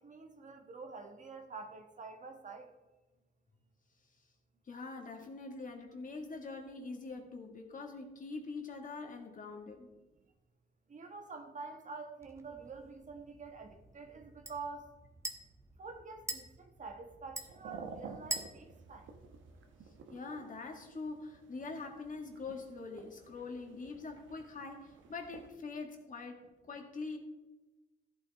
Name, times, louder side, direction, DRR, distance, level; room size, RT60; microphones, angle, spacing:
voice 1, 0.0-2.7 10.9-14.9 15.8-19.1, right 4 dB, 40° right, 5 dB, 1.3 m, -47 dB
voice 2, 4.7-9.9 20.1-27.2, left 3 dB, 40° left, 2 dB, 1.9 m, -44 dB
sound 1, 12.2-20.0, right 2 dB, 15° right, 1.2 m, -47 dB
sound 2, 17.3-25.5, right 5 dB, 75° right, 1.3 m, -52 dB
14.0 x 8.4 x 3.5 m, 1.1 s
cardioid pair, 90°, 20 cm